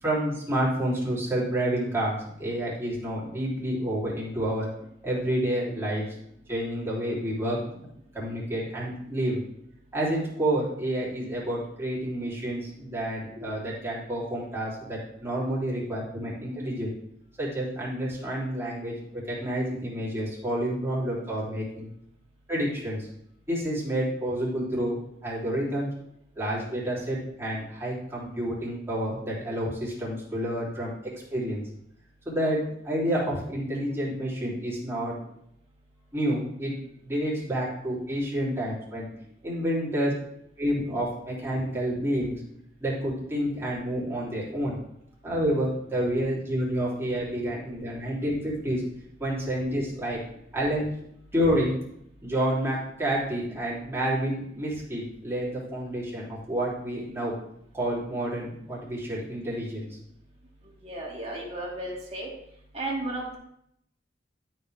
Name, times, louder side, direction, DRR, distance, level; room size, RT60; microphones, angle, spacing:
voice 1, 0.0-4.7 5.0-6.0 6.5-7.8 8.1-9.4 9.9-16.9 17.4-21.9 22.5-23.1 23.5-25.9 26.3-31.7 32.2-35.1 36.1-36.7 37.0-39.1 39.4-40.1 40.6-42.4 42.8-44.8 45.2-48.8 49.2-50.2 50.5-50.9 51.3-51.8 52.2-57.3 57.7-60.0, right 1 dB, 15° right, -7 dB, 3.4 m, -29 dB
voice 2, 60.8-62.3 62.7-63.4, right 2 dB, 35° right, -3 dB, 2.5 m, -33 dB
12.5 x 5.6 x 3.5 m, 0.75 s
head